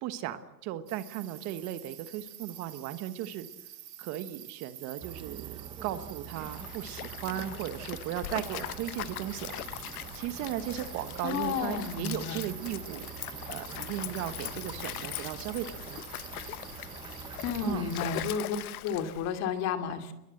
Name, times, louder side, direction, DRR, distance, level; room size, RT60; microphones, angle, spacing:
voice 1, 0.0-3.5 4.0-9.6 10.1-13.1 13.5-16.0 17.6-17.9, right 12 dB, 35° right, 11 dB, 1.3 m, -36 dB
sound 1, 0.9-18.2, right 10 dB, 85° right, 4.8 m, -47 dB
sound 2, 5.0-18.4, right 7 dB, 10° right, 0.9 m, -46 dB
Stream, 6.3-19.4, left 15 dB, 65° left, 1.2 m, -41 dB
voice 2, 11.2-12.4 17.4-18.6 18.8-20.1, left 6 dB, 35° left, 7 dB, 2.7 m, -32 dB
28.5 x 21.5 x 7.9 m, 0.93 s
hypercardioid pair, 135°, 48 cm